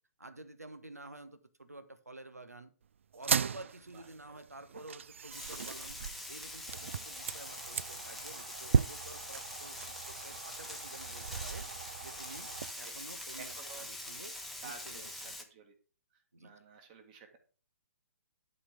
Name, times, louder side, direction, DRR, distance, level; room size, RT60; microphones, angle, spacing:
voice 1, 0.2-2.7 3.1-6.0 6.3-11.7 12.0-15.4 16.3-16.5, right 2 dB, 80° right, 12 dB, 1.2 m, -51 dB
sound 1, 3.1-12.7, right 7 dB, 55° right, 0.3 m, -37 dB
Frying (food), 5.3-15.4, left 1 dB, ahead, 0.9 m, -44 dB
voice 2, 13.3-13.9 14.6-15.7 16.4-17.4, right 5 dB, 30° right, 6 dB, 1.8 m, -52 dB
11.5 x 4.3 x 5.0 m, 0.40 s
figure-of-eight pair, 130°, 8 cm